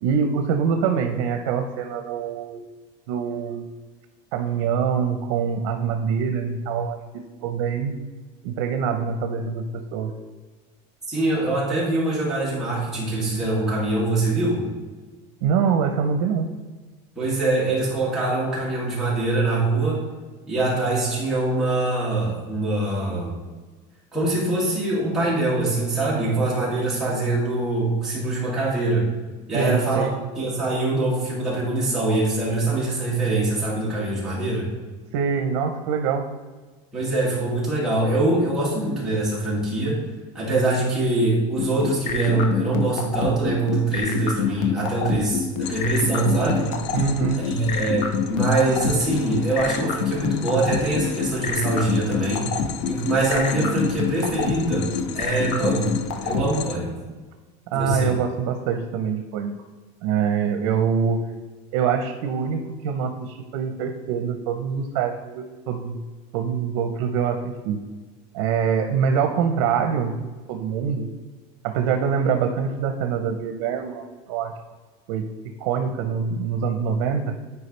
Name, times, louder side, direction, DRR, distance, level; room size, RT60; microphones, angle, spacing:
voice 1, 0.0-2.6 3.1-3.7 4.3-8.0 8.4-10.1 15.4-16.6 29.5-30.2 35.1-36.3 46.9-47.5 53.5-53.8 57.7-59.6 60.0-61.2 61.7-66.0 66.3-67.8 68.3-71.1 71.6-74.5 75.1-77.4, right 6 dB, 80° right, 5 dB, 0.7 m, -25 dB
voice 2, 11.1-14.6 17.2-20.0 20.5-23.4 24.1-29.1 29.5-30.1 30.4-34.7 36.9-40.0 40.3-46.7 47.4-52.5 52.9-55.9 56.2-56.9 57.7-58.1, right 2 dB, 5° right, -8 dB, 2.3 m, -23 dB
sound 1, 41.6-56.4, left 7 dB, 55° left, 0.8 m, -25 dB
sound 2, 45.6-56.8, left 9 dB, 80° left, 0.5 m, -36 dB
9.8 x 4.7 x 3.3 m, 1.3 s
cardioid pair, 170°, 15 cm